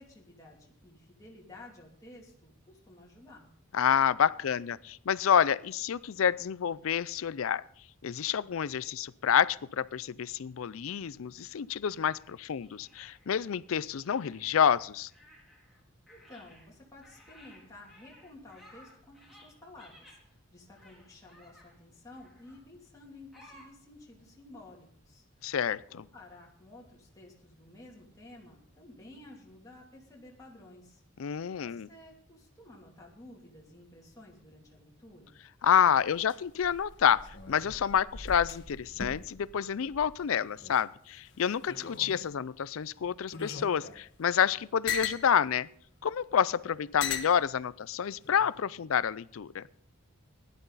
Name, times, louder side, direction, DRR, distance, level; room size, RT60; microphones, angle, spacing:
voice 1, 0.0-3.5 16.1-25.6 25.9-35.4, left 2 dB, 15° left, -3 dB, 2.8 m, -53 dB
voice 2, 3.7-7.6 8.0-15.1 25.4-26.1 31.2-31.9 35.6-45.7 46.0-49.6, left 8 dB, 75° left, 20 dB, 0.4 m, -28 dB
sound 1, 11.9-13.4 13.9-15.8 16.1-20.2 20.7-21.8 22.1-22.6 23.3-23.7, left 1 dB, ahead, 4.1 m, -58 dB
sound 2, 35.7-40.8 41.2-42.4 43.0-45.3 46.1-46.2 47.0-47.4 48.2-48.6, left 6 dB, 55° left, 1.5 m, -39 dB
16.5 x 11.0 x 4.0 m, 0.63 s
head